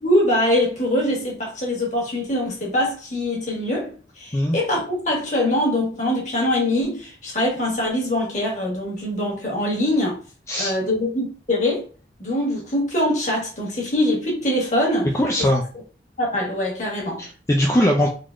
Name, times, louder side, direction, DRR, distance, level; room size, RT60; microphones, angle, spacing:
voice 1, 0.0-10.2 10.6-11.8 12.2-15.1 16.2-17.2, left 1 dB, 45° left, 1.5 m, -23 dB
voice 2, 15.1-15.6 17.2-18.1, left 1 dB, 15° left, 0.4 m, -20 dB
3.8 x 3.0 x 2.5 m
head